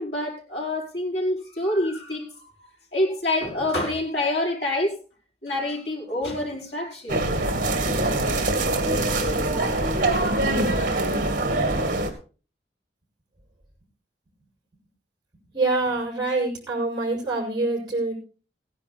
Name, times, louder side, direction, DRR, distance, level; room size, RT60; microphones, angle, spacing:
voice 1, 0.0-5.0 5.4-7.2, left 1 dB, 80° left, -3 dB, 5.4 m, -27 dB
sound 1, 7.1-12.1, right 2 dB, 50° right, 2.1 m, -23 dB
voice 2, 15.5-18.1, right 2 dB, 25° right, -2 dB, 6.1 m, -25 dB
16.5 x 10.0 x 4.2 m, 0.36 s
head